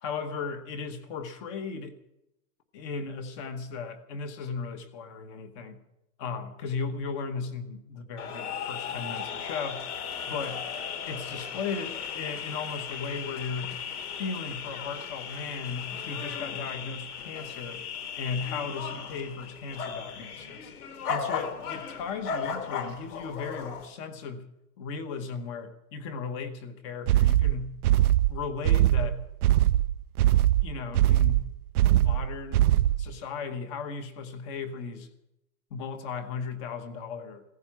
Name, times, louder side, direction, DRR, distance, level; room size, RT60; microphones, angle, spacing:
voice 1, 0.0-1.9 2.7-5.8 6.2-9.9 10.3-10.6 11.0-13.8 14.2-17.8 18.2-20.7 21.1-24.5 24.8-27.8 28.3-29.2 30.6-31.5 31.9-35.1 35.7-37.4, left 5 dB, 20° left, 1.0 m, -36 dB
sound 1, 8.2-23.9, left 7 dB, 75° left, 3.0 m, -36 dB
sound 2, 27.1-33.1, right 13 dB, 75° right, 0.6 m, -22 dB
16.5 x 14.5 x 5.9 m
hypercardioid pair, 175°, 46 cm